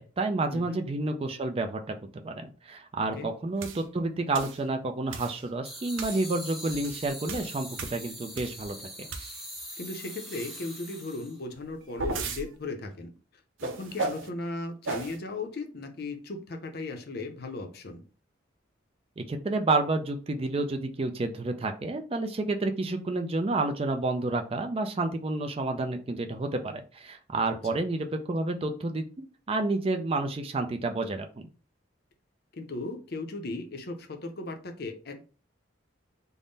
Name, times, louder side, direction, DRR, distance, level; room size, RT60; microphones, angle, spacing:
voice 1, 0.0-1.9 2.2-8.8 19.2-29.1 29.5-31.4, right 2 dB, 30° right, 6 dB, 0.4 m, -30 dB
sound 1, 3.6-3.8 4.3-4.6 5.1-5.4 6.0-6.2 6.7-8.7 9.1-9.6 11.5-12.4 13.6-14.3 14.8-15.2, right 3 dB, 85° right, 0.6 m, -35 dB
sound 2, 5.6-11.4, equal, ahead, 0.7 m, -42 dB
voice 2, 9.8-13.1 13.6-18.0 32.5-35.2, left 2 dB, 55° left, 5 dB, 0.6 m, -37 dB
3.6 x 2.1 x 3.9 m, 0.36 s
head